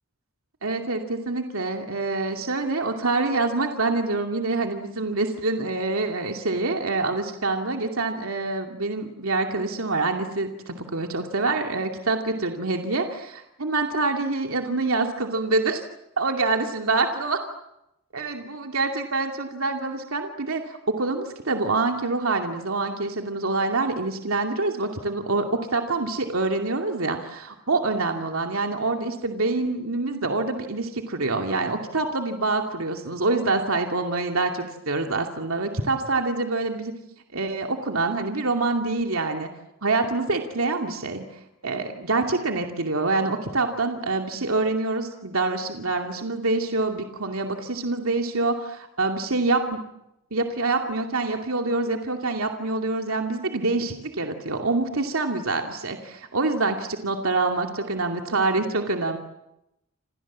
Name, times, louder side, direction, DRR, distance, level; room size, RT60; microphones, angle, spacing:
voice 1, 0.6-15.8 16.2-17.4 18.1-36.9 37.3-39.5 39.8-41.2 41.6-49.8 50.3-59.2, right 3 dB, 85° right, 3 dB, 2.5 m, -26 dB
29.5 x 27.0 x 7.4 m, 0.86 s
head